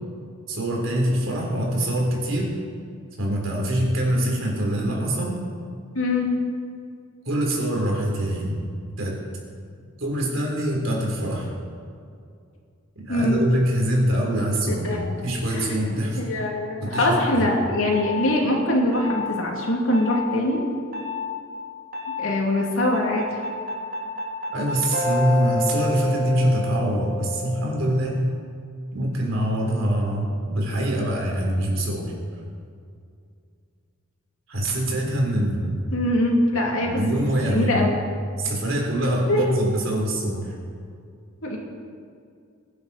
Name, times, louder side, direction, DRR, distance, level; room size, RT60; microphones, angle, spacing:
voice 1, 0.5-2.5 3.2-5.4 7.3-8.6 9.0-9.2 10.0-11.5 13.0-16.2 16.8-17.5 24.5-28.2 28.9-32.1 34.5-35.8 36.8-37.9 38.4-40.5, right 1 dB, 65° right, -2 dB, 3.8 m, -24 dB
voice 2, 5.9-6.3 13.1-13.4 14.7-15.2 15.5-20.6 22.2-23.2 35.9-37.0 37.5-38.0 39.3-39.6 41.4-41.6, left 1 dB, 70° left, -1 dB, 2.9 m, -23 dB
sound 1, 16.9-17.3 17.9-18.3 18.9-19.3 19.9-20.3 20.9-21.3 21.9-22.3 22.9-28.0, left 1 dB, 45° right, 2.7 m, -29 dB
22.5 x 10.5 x 4.3 m, 2.3 s
head